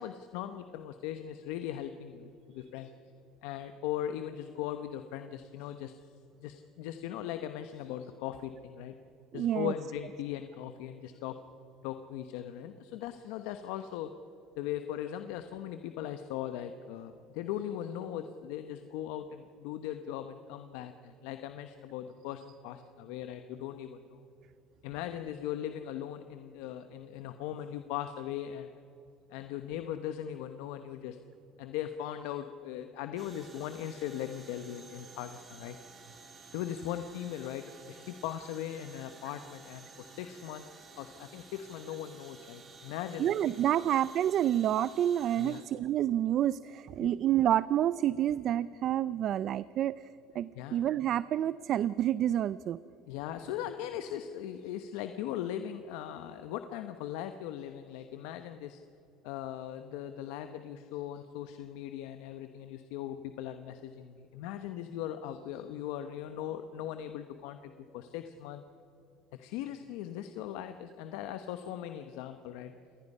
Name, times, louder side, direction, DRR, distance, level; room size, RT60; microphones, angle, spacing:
voice 1, 0.0-2.9 3.4-6.0 6.4-8.9 9.3-11.4 11.8-14.1 14.6-24.2 24.8-28.8 29.3-31.2 31.6-35.8 36.5-40.6 41.0-43.5 45.4-45.6 47.0-47.1 50.5-50.8 53.1-58.8 59.2-68.6 69.3-72.7, left 11 dB, 85° left, 8 dB, 1.0 m, -39 dB
voice 2, 9.3-9.7 43.2-50.1 50.3-52.8, right 11 dB, 45° right, 17 dB, 0.4 m, -28 dB
sound 1, 33.2-45.6, right 4 dB, 25° right, 3.2 m, -53 dB
27.5 x 20.0 x 5.5 m, 2.9 s
cardioid pair, 135°, 0 cm